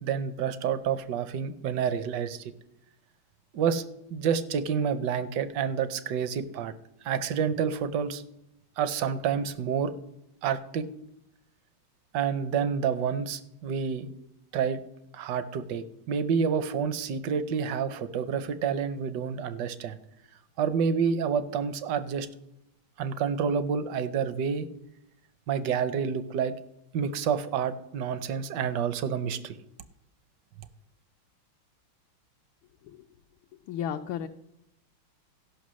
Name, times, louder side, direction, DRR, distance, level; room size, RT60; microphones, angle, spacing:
voice 1, 0.0-2.5 3.5-3.8 4.1-6.7 7.0-8.2 8.8-9.9 10.4-10.8 12.1-14.1 14.5-14.8 15.1-20.0 20.6-22.3 23.0-24.7 25.5-26.5 26.9-29.6, right 7 dB, 70° right, 13 dB, 1.1 m, -28 dB
voice 2, 33.6-34.3, left 9 dB, 75° left, 5 dB, 1.3 m, -33 dB
15.0 x 5.7 x 6.2 m, 0.83 s
omnidirectional pair, 2.3 m